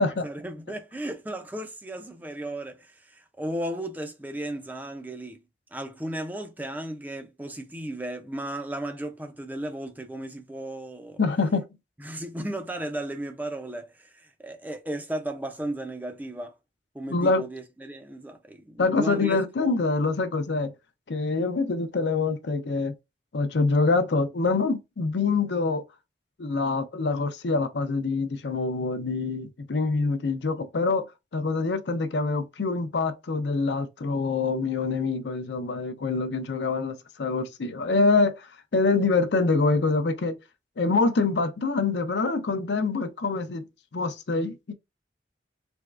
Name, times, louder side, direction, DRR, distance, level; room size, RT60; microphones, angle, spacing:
voice 1, 0.2-5.4 5.7-11.2 12.0-16.5 16.9-19.8, right 1 dB, 10° right, 0.4 m, -35 dB
voice 2, 11.2-11.7 17.1-17.4 18.8-20.7 21.1-22.9 23.3-25.8 26.4-31.1 31.3-40.4 40.8-43.7 43.9-44.7, left 3 dB, 75° left, 0.5 m, -25 dB
3.5 x 3.0 x 2.4 m
head